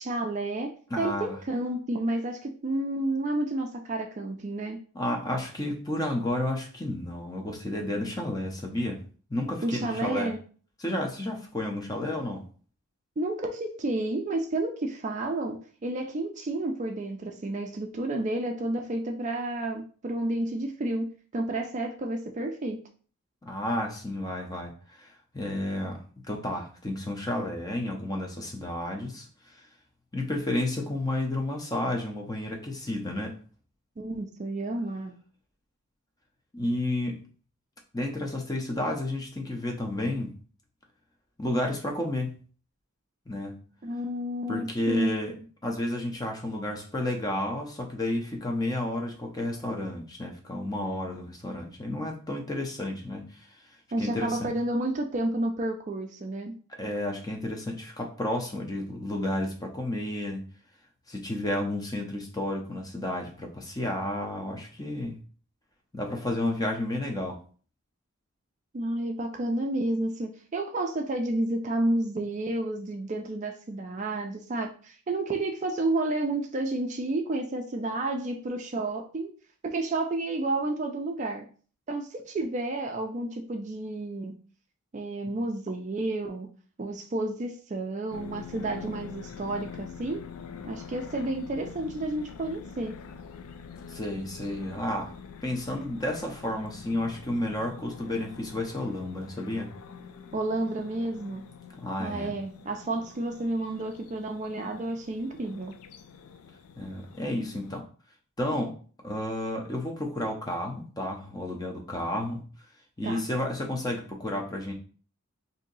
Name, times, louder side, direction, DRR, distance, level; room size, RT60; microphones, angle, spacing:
voice 1, 0.0-0.7 1.0-4.8 9.6-10.4 13.2-22.8 34.0-35.1 43.8-45.2 53.9-56.5 68.7-79.3 79.6-81.5 81.9-84.3 84.9-86.5 86.8-90.3 90.6-93.0 100.3-101.4 102.0-105.8 113.0-113.2, right 2 dB, 35° right, 4 dB, 0.4 m, -31 dB
voice 2, 0.9-1.4 4.9-9.0 9.3-10.3 10.8-12.4 23.4-26.0 26.3-29.7 30.1-33.3 36.5-37.2 37.9-40.3 41.4-42.4 43.3-43.6 44.5-45.3 45.6-53.6 54.0-54.5 56.8-60.4 61.1-65.2 65.9-67.4 93.9-95.1 95.4-99.7 101.8-102.3 106.8-107.8 108.4-108.7 109.0-112.4 113.0-114.7, left 1 dB, 15° left, 2 dB, 0.5 m, -31 dB
sound 1, 88.1-107.8, left 6 dB, 80° left, 0.4 m, -45 dB
2.7 x 2.7 x 3.9 m, 0.41 s
head